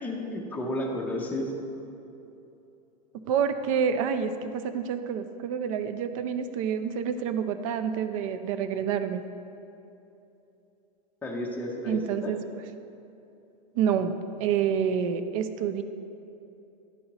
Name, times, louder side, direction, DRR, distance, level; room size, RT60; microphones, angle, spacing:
voice 1, 0.0-1.5 11.2-12.3, left 1 dB, 5° left, -1 dB, 0.6 m, -32 dB
voice 2, 3.3-9.2 11.9-12.4 13.8-14.1 14.4-15.8, right 7 dB, 55° right, 10 dB, 0.4 m, -28 dB
11.0 x 4.1 x 2.9 m, 2.9 s
supercardioid pair, 160°, 21 cm